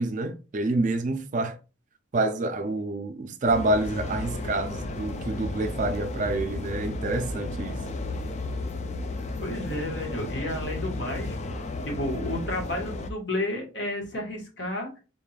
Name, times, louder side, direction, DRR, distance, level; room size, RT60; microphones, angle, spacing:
voice 1, 0.0-1.6 2.1-7.8, right 2 dB, 40° right, 0.4 m, -27 dB
sound 1, 3.5-13.1, left 2 dB, 35° left, 0.4 m, -33 dB
voice 2, 9.4-14.9, left 1 dB, 60° left, 1.5 m, -32 dB
3.7 x 3.5 x 2.4 m
head